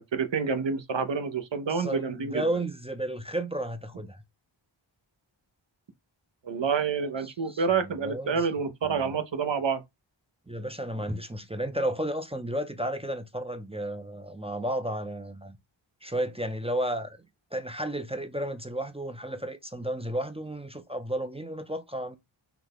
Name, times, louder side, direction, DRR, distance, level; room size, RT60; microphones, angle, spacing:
voice 1, 0.0-2.4 6.4-9.8, right 5 dB, 65° right, 0.8 m, -28 dB
voice 2, 1.7-4.2 7.5-8.4 10.5-15.6 16.0-17.2 17.5-22.2, right 1 dB, 10° right, 0.5 m, -32 dB
5.9 x 2.2 x 3.5 m
wide cardioid pair, 65°, 49 cm